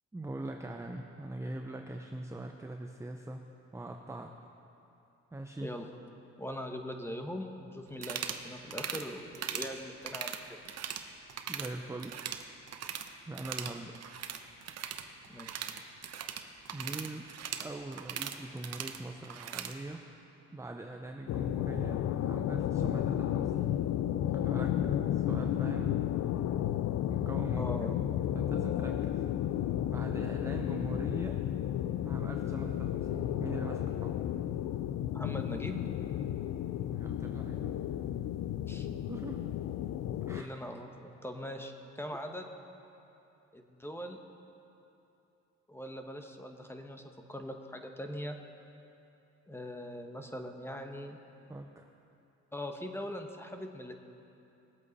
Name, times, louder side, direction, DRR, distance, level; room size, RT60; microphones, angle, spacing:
voice 1, 0.1-3.5 3.7-4.3 5.3-5.8 11.5-12.5 12.8-13.0 13.3-14.0 16.7-17.3 17.6-20.0 20.5-23.8 24.2-24.8 25.1-26.0 27.1-27.7 28.3-29.2 29.9-31.4 32.0-34.3 36.9-37.8 39.1-39.4 40.2-40.5 51.5-51.8, right 2 dB, 10° right, 3 dB, 0.6 m, -42 dB
voice 2, 5.6-5.9 6.4-10.6 15.3-15.7 27.6-27.9 35.1-35.8 38.7-38.9 40.3-42.5 43.5-44.2 45.7-48.4 49.5-51.2 52.5-53.9, equal, 10° left, 5 dB, 1.1 m, -41 dB
sound 1, 7.9-8.4 8.7-9.0 9.3-9.7 10.0-11.0 11.3-11.7 12.0-13.1 13.3-19.7, right 8 dB, 55° right, 0.9 m, -39 dB
sound 2, 21.3-40.4, left 11 dB, 60° left, 0.5 m, -33 dB
20.0 x 8.2 x 4.1 m, 2.9 s
cardioid pair, 90°, 30 cm